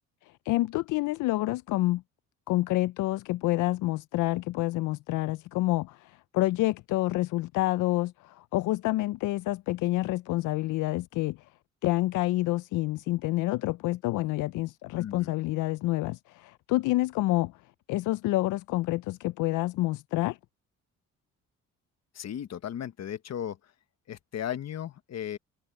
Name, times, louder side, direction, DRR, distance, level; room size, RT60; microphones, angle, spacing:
voice 1, 0.5-2.0 2.5-11.4 11.8-17.5 17.9-20.4, left 18 dB, 85° left, 0.5 m, -28 dB
voice 2, 15.0-15.3 22.1-23.6 24.1-25.4, left 10 dB, 60° left, 1.3 m, -36 dB
cardioid pair, 90°, 30 cm